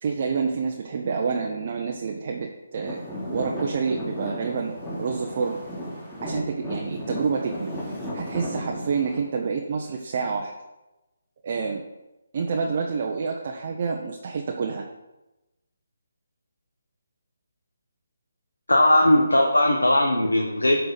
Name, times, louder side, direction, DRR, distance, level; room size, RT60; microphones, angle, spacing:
voice 1, 0.0-3.0 3.3-4.7 5.0-5.6 6.2-7.7 8.1-10.5 11.4-11.8 12.3-14.8, right 5 dB, 45° right, 0 dB, 0.9 m, -28 dB
Traffic noise roadway noise / Engine, 2.8-9.2, equal, 10° left, 3.2 m, -34 dB
voice 2, 18.7-20.8, left 1 dB, 90° left, 2 dB, 1.1 m, -19 dB
12.5 x 4.6 x 4.1 m, 1.0 s
figure-of-eight pair, 150°, 0 cm